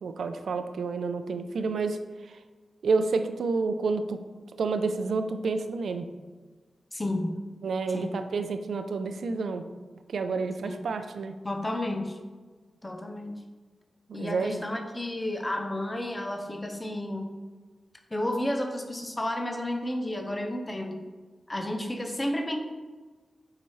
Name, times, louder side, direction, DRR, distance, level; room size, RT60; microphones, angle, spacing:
voice 1, 0.0-2.0 2.8-4.2 4.6-6.1 7.6-9.6 10.1-11.3 14.1-14.6, right 4 dB, 85° right, 8 dB, 0.4 m, -29 dB
voice 2, 6.9-7.4 7.9-8.1 10.6-10.8 11.4-12.2 12.8-13.4 14.1-17.3 18.1-21.0 21.5-22.6, left 1 dB, 15° left, 3 dB, 0.5 m, -31 dB
6.9 x 4.8 x 3.1 m, 1.3 s
wide cardioid pair, 175°, 0 cm